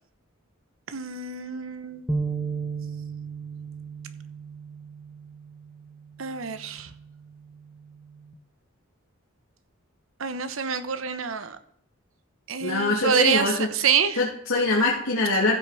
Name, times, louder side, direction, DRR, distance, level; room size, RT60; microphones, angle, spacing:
voice 1, 0.9-2.0 6.2-6.9 10.2-11.6 12.5-14.2, right 7 dB, 70° right, 11 dB, 1.1 m, -26 dB
sound 1, 2.1-8.3, right 4 dB, 5° right, 0.9 m, -35 dB
voice 2, 12.6-13.7 14.2-15.6, left 2 dB, 80° left, -4 dB, 2.6 m, -23 dB
15.0 x 6.1 x 4.9 m, 0.69 s
head